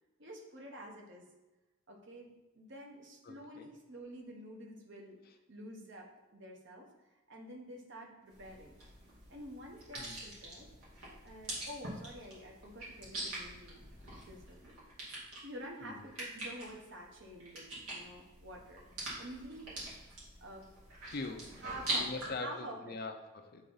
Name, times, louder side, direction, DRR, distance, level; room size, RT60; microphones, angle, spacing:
voice 1, 0.2-1.3 1.9-5.2 5.5-6.9 7.3-8.7 9.3-10.7 11.2-13.9 14.2-14.8 15.4-18.8 19.2-19.7 20.4-20.7 21.6-22.9, equal, 55° right, 0 dB, 1.1 m, -48 dB
voice 2, 3.2-3.7 10.0-10.3 15.8-16.0 21.0-21.6 21.9-23.7, left 3 dB, 45° left, 6 dB, 0.5 m, -43 dB
sound 1, 8.3-22.3, right 1 dB, 85° right, 2.4 m, -44 dB
7.8 x 3.7 x 4.0 m, 1.1 s
head